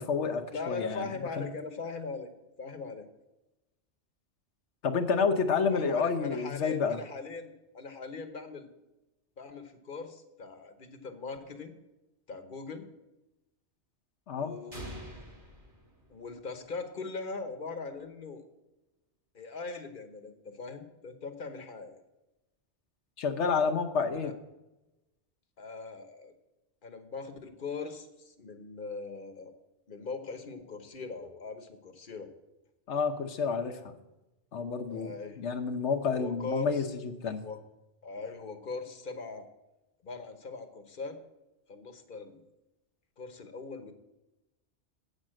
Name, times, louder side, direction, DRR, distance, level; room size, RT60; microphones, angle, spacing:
voice 1, 0.0-1.1 1.4-1.5 4.8-7.0 14.3-14.5 23.2-24.3 32.9-33.9 34.5-37.4, left 5 dB, 85° left, 6 dB, 1.2 m, -29 dB
voice 2, 0.5-2.3 2.6-3.1 5.7-8.7 9.4-11.7 12.3-12.9 14.4-15.2 16.1-18.4 19.3-22.0 24.0-24.3 25.6-26.3 26.8-29.5 29.9-32.3 34.9-35.4 36.1-36.9 37.4-37.6 38.0-39.5 40.0-41.2 41.7-42.4 43.2-44.0, left 4 dB, 50° left, 7 dB, 1.1 m, -40 dB
sound 1, 14.7-16.6, equal, 45° right, 3.9 m, -46 dB
8.3 x 6.6 x 7.5 m, 0.99 s
omnidirectional pair, 1.1 m